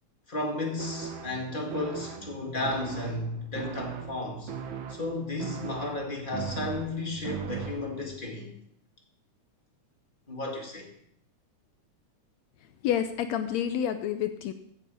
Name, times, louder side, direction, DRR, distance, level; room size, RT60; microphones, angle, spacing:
voice 1, 0.3-4.5 4.9-8.5 10.3-10.9, left 2 dB, 20° left, 0 dB, 1.5 m, -33 dB
sound 1, 0.8-8.2, right 7 dB, 65° right, 1.2 m, -39 dB
voice 2, 12.8-14.5, left 9 dB, 75° left, 9 dB, 1.7 m, -28 dB
14.5 x 7.1 x 5.3 m, 0.73 s
omnidirectional pair, 3.5 m